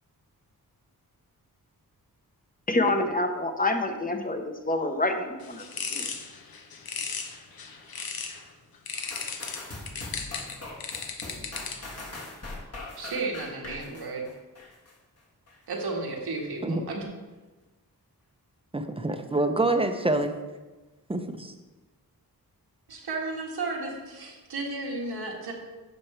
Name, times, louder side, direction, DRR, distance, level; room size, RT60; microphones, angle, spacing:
voice 1, 2.7-5.7 5.9-6.1, left 2 dB, 20° left, 6 dB, 0.9 m, -27 dB
sound 1, 5.4-8.4 8.9-12.0, left 5 dB, 70° left, 1.0 m, -36 dB
sound 2, 9.1-14.9 15.5-15.6, left 2 dB, 40° left, 1.6 m, -41 dB
voice 2, 13.0-14.3 15.7-17.1 22.9-25.5, right 3 dB, 85° right, -1 dB, 1.6 m, -33 dB
voice 3, 18.7-20.3 21.1-21.5, right 2 dB, 15° right, 7 dB, 0.7 m, -26 dB
10.5 x 6.1 x 3.3 m, 1.2 s
wide cardioid pair, 85°, 38 cm